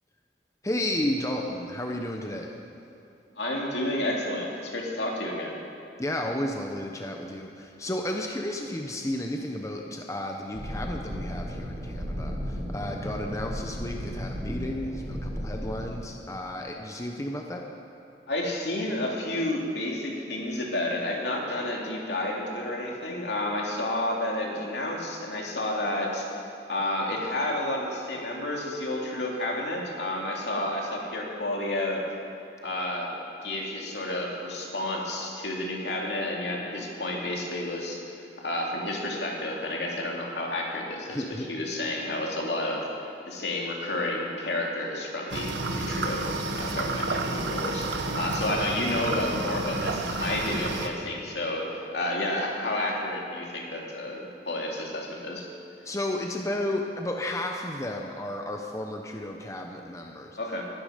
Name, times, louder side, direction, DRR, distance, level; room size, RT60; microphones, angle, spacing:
voice 1, 0.6-2.5 6.0-17.6 41.1-41.7 55.8-60.4, left 1 dB, 20° left, 2 dB, 0.9 m, -32 dB
voice 2, 3.4-5.6 18.3-26.3 26.7-32.0 32.6-33.1 33.4-38.0 38.4-55.5 60.4-60.7, left 1 dB, 70° left, -2 dB, 2.8 m, -30 dB
sound 1, 10.5-15.8, equal, 30° right, 4.4 m, -34 dB
sound 2, 45.3-50.9, right 2 dB, 90° right, 1.2 m, -30 dB
20.0 x 12.0 x 5.2 m, 2.7 s
head